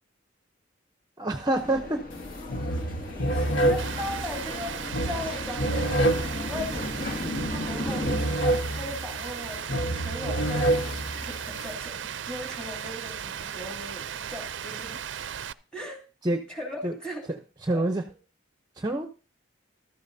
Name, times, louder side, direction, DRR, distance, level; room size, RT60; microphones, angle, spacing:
voice 1, 1.2-2.0 16.2-16.4 16.8-16.9 17.3-18.0 18.8-19.1, right 1 dB, 20° right, 6 dB, 0.7 m, -27 dB
sound 1, 1.5-8.2, left 1 dB, 45° left, 2.1 m, -35 dB
sound 2, 2.1-2.2 2.5-11.7, right 1 dB, 70° left, 1.2 m, -28 dB
voice 2, 3.3-7.2 7.6-15.0 15.7-16.0 16.5-17.3 17.7-17.9, left 1 dB, 5° left, 1 dB, 3.0 m, -38 dB
Rain, 3.8-15.5, right 8 dB, 65° right, 0.5 m, -36 dB
15.0 x 13.0 x 2.7 m, 0.33 s
head